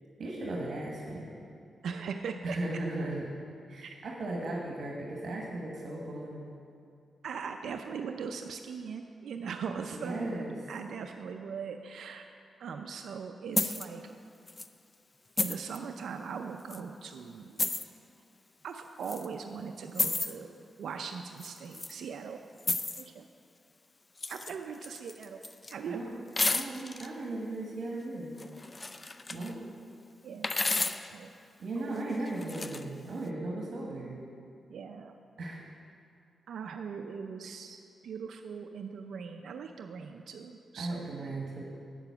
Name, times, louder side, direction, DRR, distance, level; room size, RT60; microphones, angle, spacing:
voice 1, 0.2-1.3 2.4-3.3 3.7-6.5 9.9-10.6 25.8-26.1 26.4-28.4 29.3-29.5 31.6-34.3 35.4-35.6 40.8-41.6, right 2 dB, 60° right, -2 dB, 1.3 m, -36 dB
voice 2, 1.8-2.6 3.8-4.0 7.2-12.2 12.6-14.1 15.4-17.6 18.6-22.4 23.0-23.3 24.3-25.4 25.7-26.0 30.2-30.6 31.1-31.3 31.8-32.2 34.7-35.2 36.5-41.3, right 6 dB, 80° right, 5 dB, 0.4 m, -40 dB
sound 1, 13.6-13.9 14.5-14.7 15.4-15.8 16.7-16.8 17.6-17.8 19.0-19.3 20.0-20.3 21.4-21.9 22.6-23.1 24.2-24.6 24.8-25.7 26.4-27.1 28.4-29.5 30.4-31.1 32.3-32.8, left 3 dB, 30° left, 0.4 m, -32 dB
8.7 x 7.0 x 5.8 m, 2.5 s
cardioid pair, 95°, 0 cm